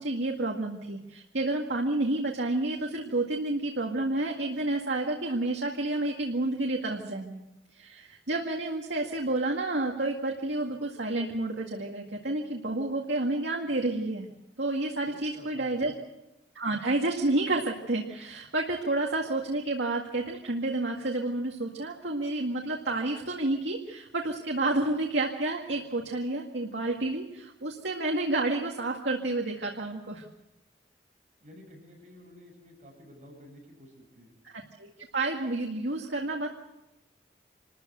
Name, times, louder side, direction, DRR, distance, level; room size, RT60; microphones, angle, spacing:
voice 1, 0.0-7.4 7.7-14.3 14.6-15.9 16.6-30.2 34.4-36.5, right 2 dB, 85° right, 0 dB, 2.0 m, -30 dB
voice 2, 15.1-16.0 31.4-34.4, equal, 45° right, 0 dB, 7.6 m, -51 dB
26.5 x 14.0 x 8.0 m, 0.95 s
head